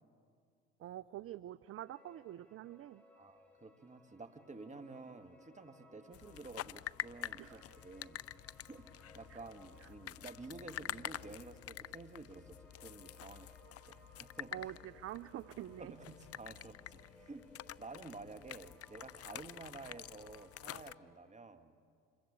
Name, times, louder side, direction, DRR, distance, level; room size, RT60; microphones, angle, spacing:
voice 1, 0.8-3.0 7.4-7.6 9.3-9.4 9.8-9.9 14.5-15.9, right 13 dB, 45° right, 17 dB, 0.6 m, -46 dB
sound 1, 1.9-21.0, equal, 5° left, 7.1 m, -63 dB
voice 2, 3.2-8.2 8.6-13.5 13.9-14.5 15.8-17.4 17.8-21.7, right 3 dB, 20° right, 8 dB, 2.0 m, -51 dB
sound 2, 6.1-20.9, left 13 dB, 50° left, 0.6 m, -48 dB
26.5 x 22.0 x 8.7 m, 2.2 s
hypercardioid pair, 60°, 32 cm